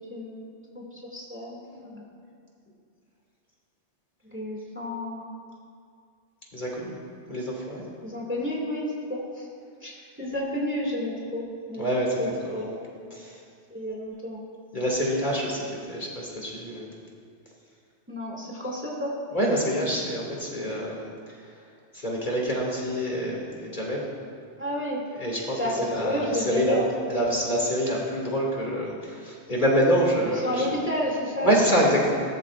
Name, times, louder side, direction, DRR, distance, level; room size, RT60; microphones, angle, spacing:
voice 1, 0.1-2.0 4.3-5.3 8.0-9.5 9.8-11.9 12.2-12.7 13.0-13.1 13.7-14.4 18.1-19.2 24.6-25.0 25.6-26.9 27.2-27.3 30.4-31.6, left 1 dB, 10° right, -4 dB, 2.2 m, -31 dB
voice 2, 6.5-6.9 7.3-7.8 11.8-12.2 12.4-12.7 13.1-13.4 14.7-16.9 19.3-21.5 21.9-24.1 25.2-26.8 27.1-30.7 31.4-32.1, equal, 45° left, -4 dB, 2.6 m, -26 dB
20.0 x 13.5 x 2.5 m, 2.3 s
omnidirectional pair, 1.2 m